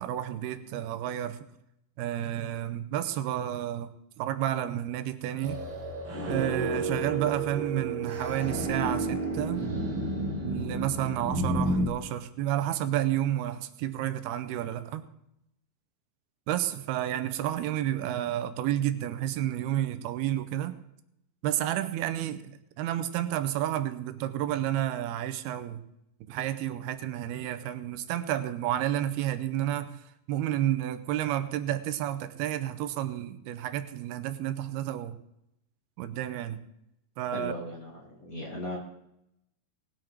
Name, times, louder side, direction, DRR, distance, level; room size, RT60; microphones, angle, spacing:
voice 1, 0.0-1.5 2.0-3.9 4.2-5.6 6.3-9.6 10.4-15.0 16.5-20.8 21.4-25.8 26.2-29.9 30.3-35.2 36.0-36.6 37.2-37.5, right 12 dB, 85° right, 11 dB, 2.7 m, -31 dB
sound 1, 5.4-11.9, right 2 dB, 35° right, 2.2 m, -31 dB
voice 2, 37.3-38.8, left 1 dB, 80° left, -2 dB, 0.7 m, -37 dB
20.0 x 7.6 x 4.6 m, 0.80 s
omnidirectional pair, 4.4 m